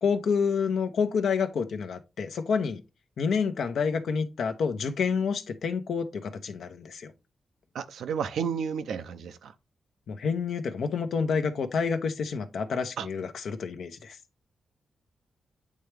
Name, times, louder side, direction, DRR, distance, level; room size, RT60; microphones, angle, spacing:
voice 1, 0.0-2.8 3.2-7.1 10.1-14.2, left 5 dB, 75° left, 0.8 m, -28 dB
voice 2, 7.7-9.5 13.0-13.1, right 7 dB, 85° right, 0.5 m, -32 dB
8.5 x 3.4 x 3.3 m
cardioid pair, 65°, 0 cm